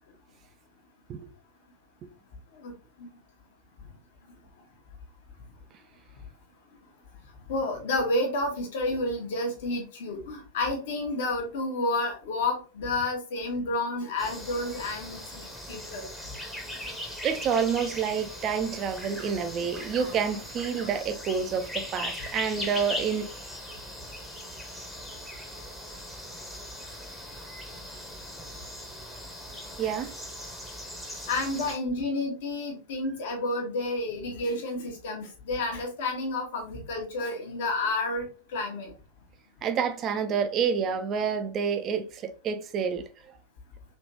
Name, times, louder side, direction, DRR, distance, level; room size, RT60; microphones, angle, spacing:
voice 1, 2.6-3.1 7.5-15.2 15.7-16.1 31.3-38.9, left 2 dB, 55° left, 1.0 m, -30 dB
sound 1, 14.2-31.8, left 1 dB, 5° left, 0.8 m, -39 dB
voice 2, 17.2-23.3 29.8-30.1 39.6-43.0, right 6 dB, 30° right, 0.5 m, -28 dB
3.2 x 2.9 x 2.8 m
figure-of-eight pair, 90°, 0 cm